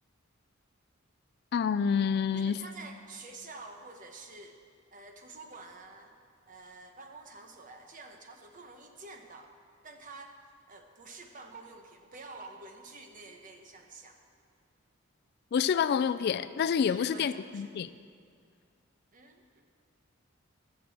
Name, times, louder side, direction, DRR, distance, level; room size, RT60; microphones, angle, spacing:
voice 1, 1.5-2.6 15.5-17.9, left 7 dB, 50° left, 14 dB, 0.3 m, -28 dB
voice 2, 2.3-4.6 4.9-6.1 6.5-9.5 9.8-10.4 10.7-14.2 16.7-17.7 19.1-19.6, right 3 dB, 40° right, 4 dB, 1.1 m, -49 dB
12.0 x 6.9 x 7.8 m, 2.2 s
head